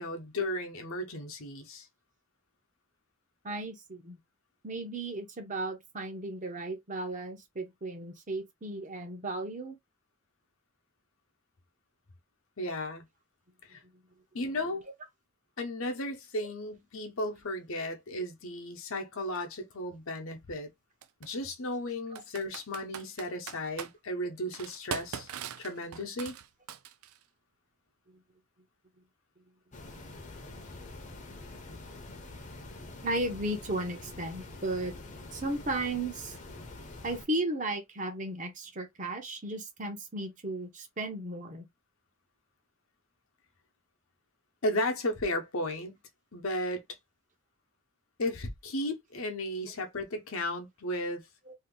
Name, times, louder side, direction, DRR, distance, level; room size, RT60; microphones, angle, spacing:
voice 1, 0.0-1.9 12.6-13.1 13.6-13.8 14.3-14.8 15.6-20.7 21.2-25.3 25.6-26.4 44.6-46.0 46.3-46.8 48.2-51.3, left 1 dB, 75° left, 0.9 m, -34 dB
voice 2, 3.4-4.2 4.6-9.8 22.1-22.2 33.0-34.9 35.3-36.4 37.0-41.7 51.5-51.6, right 2 dB, 35° right, 0.8 m, -35 dB
Computer keyboard, 19.3-19.4 21.0-21.3 22.2-23.9 24.5-27.2, right 8 dB, 90° right, 0.4 m, -41 dB
sound 1, 29.7-37.3, left 2 dB, 35° left, 0.7 m, -46 dB
2.8 x 2.5 x 3.7 m
head